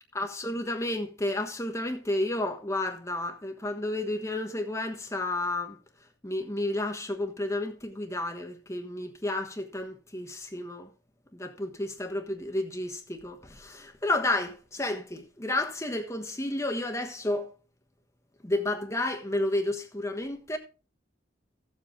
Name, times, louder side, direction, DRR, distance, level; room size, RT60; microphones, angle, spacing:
voice 1, 0.1-5.8 6.2-10.9 11.3-17.5 18.4-20.6, left 1 dB, 15° left, 1.2 m, -31 dB
14.0 x 7.5 x 3.6 m
head